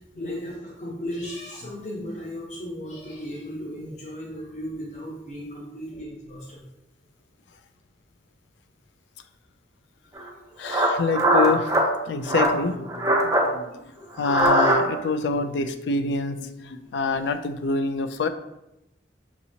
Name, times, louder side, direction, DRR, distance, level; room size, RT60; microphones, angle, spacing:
voice 1, 0.2-6.6 10.1-10.9 13.2-13.3 13.7-14.1, equal, 40° left, -3 dB, 0.9 m, -36 dB
sound 1, 10.2-10.3 10.7-11.9 12.3-12.6 12.9-13.5 14.2-15.1, right 1 dB, 15° right, 0.4 m, -21 dB
voice 2, 10.6-11.7 12.1-13.8 14.2-18.3, left 3 dB, 80° left, 9 dB, 0.4 m, -26 dB
5.9 x 2.8 x 2.7 m, 0.89 s
head